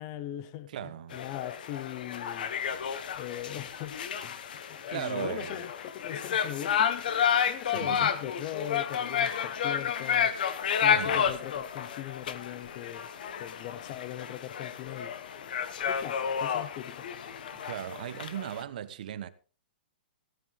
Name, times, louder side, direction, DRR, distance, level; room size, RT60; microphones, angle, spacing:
voice 1, 0.0-2.5 3.1-4.4 4.7-7.1 7.5-10.3 10.8-13.1 13.4-15.1 15.9-17.1, left 12 dB, 25° left, 0.7 m, -40 dB
voice 2, 0.7-1.2 4.4-5.7 7.8-8.1 11.0-11.3 17.5-19.3, right 11 dB, 45° right, 1.2 m, -38 dB
sound 1, 1.1-18.6, left 8 dB, 50° left, 1.2 m, -31 dB
16.5 x 11.5 x 3.6 m
hypercardioid pair, 175°, 6 cm